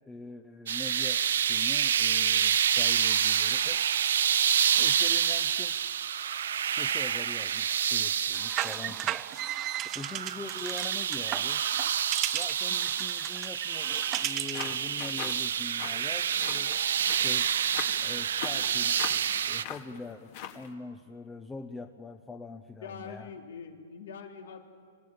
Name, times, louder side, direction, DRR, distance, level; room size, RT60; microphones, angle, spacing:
voice 1, 0.1-3.8 4.8-5.8 6.7-9.2 9.9-11.6 12.3-16.8 17.1-17.5 18.0-19.0 19.5-23.3, left 3 dB, 10° left, 6 dB, 0.9 m, -43 dB
sound 1, 0.7-19.6, right 9 dB, 75° right, 0.7 m, -28 dB
sound 2, 8.3-14.8, right 13 dB, 30° right, 0.6 m, -36 dB
sound 3, 14.2-20.7, left 8 dB, 55° left, 2.4 m, -42 dB
voice 2, 22.8-24.6, left 6 dB, 70° left, 4 dB, 2.7 m, -43 dB
26.0 x 17.0 x 9.0 m, 2.1 s
hypercardioid pair, 120°, 0 cm